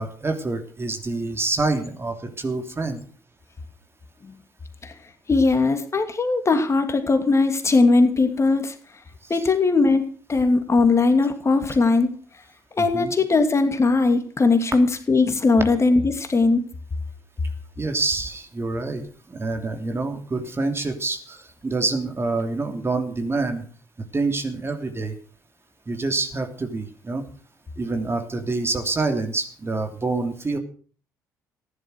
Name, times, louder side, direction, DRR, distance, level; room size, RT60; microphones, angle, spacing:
voice 1, 0.0-3.0 9.2-9.5 12.8-13.1 17.8-23.6 24.1-25.1 25.9-27.2 27.8-30.6, right 3 dB, 25° right, 5 dB, 3.1 m, -27 dB
voice 2, 5.3-8.7 9.3-10.0 10.3-12.1 12.8-16.6, left 3 dB, 30° left, 7 dB, 2.6 m, -19 dB
15.5 x 11.0 x 6.4 m, 0.42 s
figure-of-eight pair, 45°, 9 cm